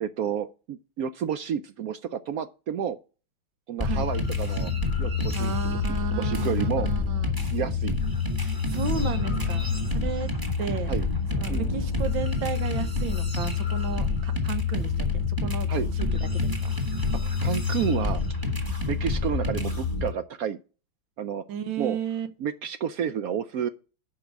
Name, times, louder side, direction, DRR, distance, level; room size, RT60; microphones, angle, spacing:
voice 1, 0.0-3.0 3.7-4.7 5.0-5.8 6.1-6.9 7.5-8.0 10.9-11.1 11.5-11.7 15.7-15.9 17.2-18.2 18.7-20.6 21.2-21.4 21.8-22.0 22.4-23.7, right 8 dB, 70° right, 0.8 m, -30 dB
sound 1, 3.8-20.1, left 4 dB, 10° right, 1.6 m, -27 dB
voice 2, 5.3-7.4 8.7-10.3 10.6-10.9 11.3-15.7 16.3-16.5 21.5-22.3, right 7 dB, 90° right, 1.8 m, -33 dB
sound 2, 6.2-12.0, left 8 dB, 90° left, 1.4 m, -37 dB
8.6 x 5.4 x 6.0 m
omnidirectional pair, 2.1 m